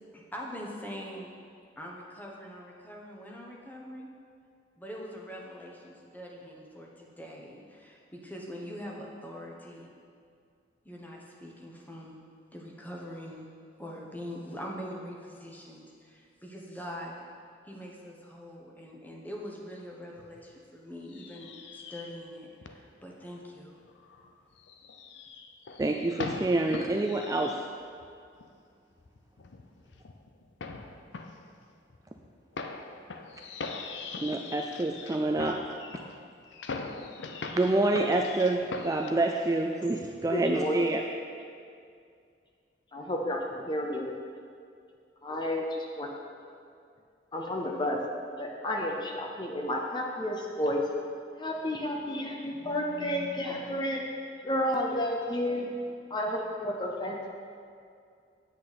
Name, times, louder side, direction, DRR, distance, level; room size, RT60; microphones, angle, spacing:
voice 1, 0.1-1.3 1.8-4.1 4.8-9.9 10.8-12.2 12.5-13.5 13.8-17.2 17.6-23.8, equal, 10° left, -2 dB, 1.0 m, -43 dB
sound 1, 20.2-20.6 21.1-22.3 22.6-22.7 23.1-28.1 28.3-28.5 29.0-39.1, left 4 dB, 80° left, 0.6 m, -41 dB
voice 2, 25.8-27.6 34.2-35.6 37.5-41.0, right 2 dB, 20° right, 2 dB, 0.3 m, -27 dB
voice 3, 40.3-41.0 42.9-44.1 45.2-46.1 47.3-48.0 48.4-50.9 51.4-54.1 54.4-55.7 56.1-57.3, left 1 dB, 25° left, 0 dB, 0.6 m, -31 dB
8.5 x 7.6 x 4.2 m, 2.3 s
head